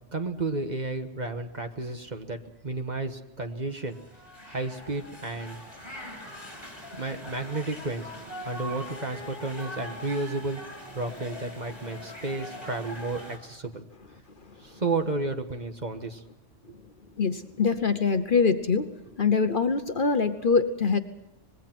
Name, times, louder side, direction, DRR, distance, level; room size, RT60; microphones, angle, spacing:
voice 1, 0.1-2.4 2.6-4.0 4.5-5.6 7.0-10.6 10.9-13.9 14.6-16.2 16.7-16.8, right 3 dB, 35° right, 6 dB, 1.4 m, -32 dB
sound 1, 3.8-13.4, left 1 dB, 20° left, 5.9 m, -42 dB
voice 2, 17.2-18.9 19.2-21.0, left 5 dB, 45° left, 9 dB, 1.1 m, -24 dB
25.5 x 21.0 x 6.0 m, 0.91 s
omnidirectional pair, 1.3 m